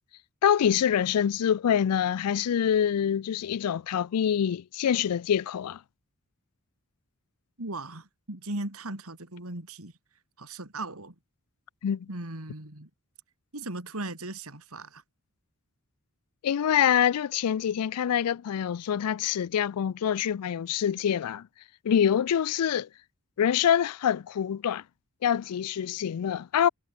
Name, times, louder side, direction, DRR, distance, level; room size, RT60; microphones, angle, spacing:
voice 1, 0.4-5.8 11.8-12.1 16.4-21.5 21.8-22.9 23.4-24.8 25.2-26.7, left 9 dB, 90° left, 0.4 m, -25 dB
voice 2, 7.6-9.9 10.4-11.2 12.1-12.9 13.5-15.0, right 2 dB, 70° right, 3.8 m, -37 dB
head